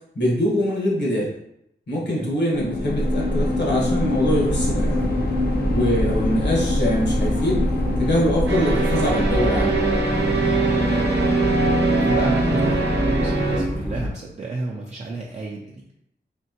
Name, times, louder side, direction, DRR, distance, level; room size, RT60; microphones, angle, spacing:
voice 1, 0.1-1.3 1.9-4.9 5.7-7.6 8.0-9.8, equal, 75° left, -4 dB, 1.3 m, -23 dB
voice 2, 2.0-2.4 5.6-5.9 10.7-11.3 11.8-15.8, right 3 dB, 40° right, -3 dB, 0.5 m, -32 dB
sound 1, 2.5-10.4, left 1 dB, 60° left, 0.8 m, -24 dB
sound 2, 4.5-14.1, left 1 dB, 10° left, 0.6 m, -27 dB
sound 3, 8.5-13.6, right 3 dB, 70° right, 0.8 m, -22 dB
4.4 x 2.8 x 2.9 m, 0.78 s
wide cardioid pair, 110°, 18 cm